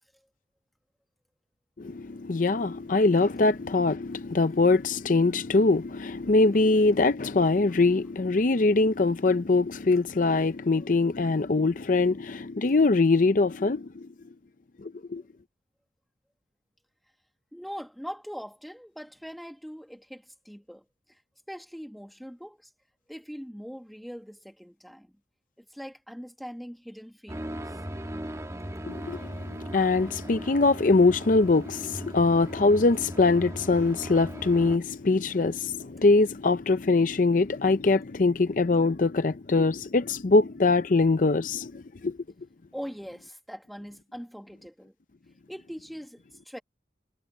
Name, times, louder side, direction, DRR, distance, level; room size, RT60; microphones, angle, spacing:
voice 1, 1.8-14.1 14.8-15.2 28.8-42.2, left 3 dB, 45° left, 0.5 m, -23 dB
voice 2, 17.5-20.8 21.5-22.7 23.1-25.1 25.6-27.6 42.7-44.9 45.5-46.6, equal, ahead, 1.6 m, -41 dB
sound 1, 27.3-34.8, right 1 dB, 15° right, 1.4 m, -38 dB
head